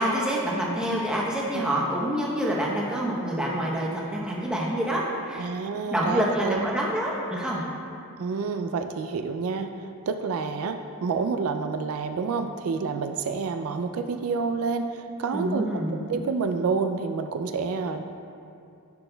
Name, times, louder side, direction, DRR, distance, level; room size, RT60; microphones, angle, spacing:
voice 1, 0.0-5.5 5.9-7.6 15.3-16.0, right 1 dB, 5° right, -4 dB, 0.8 m, -27 dB
voice 2, 5.4-6.7 8.2-15.8 16.1-18.0, right 4 dB, 75° right, 7 dB, 0.3 m, -28 dB
10.5 x 6.2 x 2.2 m, 2.5 s
head